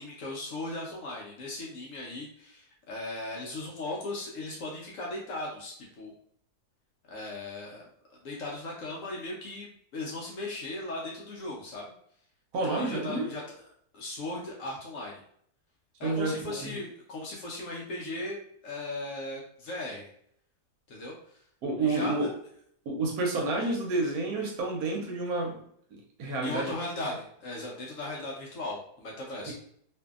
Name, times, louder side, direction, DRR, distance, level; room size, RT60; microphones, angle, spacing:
voice 1, 0.0-6.1 7.1-11.8 12.6-13.4 13.9-15.2 16.0-18.4 18.6-20.1 20.9-21.4 21.8-22.3 26.4-29.5, left 2 dB, 65° left, -2 dB, 0.8 m, -37 dB
voice 2, 12.5-13.3 16.0-16.8 21.6-22.3 22.9-25.6 25.9-26.7 29.5-29.6, right 2 dB, 70° right, 1 dB, 1.1 m, -30 dB
2.6 x 2.6 x 2.3 m, 0.66 s
omnidirectional pair, 1.7 m